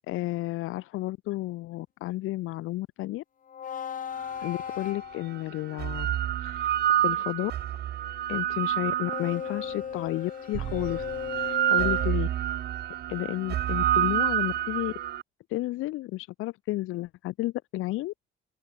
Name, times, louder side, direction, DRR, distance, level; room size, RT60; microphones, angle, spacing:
voice 1, 0.1-3.2 4.4-6.1 6.4-6.8 7.0-7.5 8.3-11.0 11.3-12.3 13.1-14.9 15.5-18.1, left 17 dB, 80° left, 1.1 m, -32 dB
sound 1, 3.5-5.7 8.9-12.1, left 8 dB, 40° left, 5.1 m, -37 dB
sound 2, 4.5-4.6 5.5-9.8 10.5-15.2, right 11 dB, 50° right, 1.7 m, -28 dB
open air
cardioid pair, 160°, 21 cm